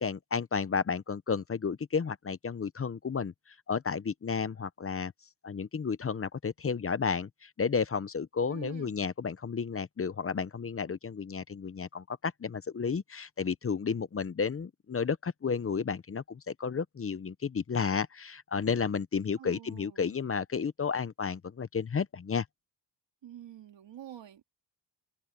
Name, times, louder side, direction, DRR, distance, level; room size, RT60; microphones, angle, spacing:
voice 1, 0.0-3.3 3.7-5.1 5.4-22.5, left 6 dB, 30° left, 0.7 m, -32 dB
voice 2, 8.5-8.9 19.4-20.1 23.2-24.4, right 10 dB, 90° right, 2.2 m, -47 dB
open air
wide cardioid pair, 120°, 43 cm